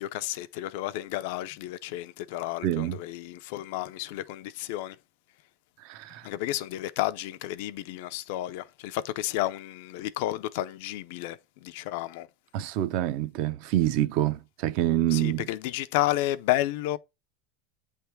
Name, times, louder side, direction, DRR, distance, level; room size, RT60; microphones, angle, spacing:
voice 1, 0.0-4.9 6.2-11.4 11.6-12.3 15.1-17.0, left 15 dB, 55° left, 0.5 m, -31 dB
voice 2, 2.6-3.0 5.8-6.3 12.5-15.5, right 13 dB, 45° right, 0.6 m, -27 dB
8.8 x 3.4 x 4.5 m
supercardioid pair, 175°, 0 cm